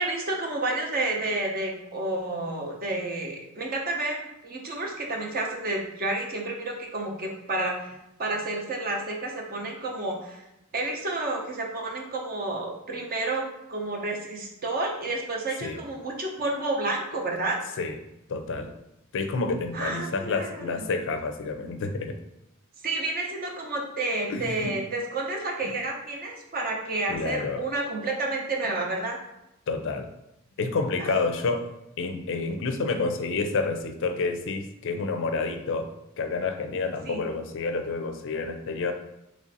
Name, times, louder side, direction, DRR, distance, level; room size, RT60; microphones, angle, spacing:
voice 1, 0.0-7.9 8.2-10.4 10.7-17.6 19.7-20.9 22.8-29.2 31.0-31.1 37.0-37.3, right 2 dB, 40° right, 1 dB, 0.6 m, -30 dB
voice 2, 18.3-18.7 19.1-22.2 24.3-24.7 25.6-25.7 27.1-27.6 29.7-30.1 30.6-31.7 32.0-38.9, left 3 dB, 60° left, 6 dB, 0.4 m, -29 dB
3.3 x 2.5 x 3.9 m, 0.85 s
head